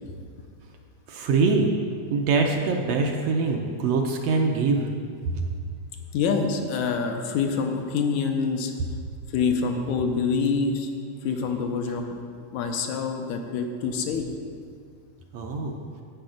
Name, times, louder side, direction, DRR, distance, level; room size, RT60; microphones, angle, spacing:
voice 1, 1.1-1.7 2.1-4.9 5.4-5.5 15.3-15.8, right 4 dB, 70° right, 2 dB, 1.7 m, -23 dB
voice 2, 6.1-8.7 9.3-10.9 11.2-12.1 12.5-14.3, left 5 dB, 80° left, 4 dB, 2.2 m, -26 dB
10.5 x 8.2 x 5.0 m, 2.2 s
omnidirectional pair, 3.3 m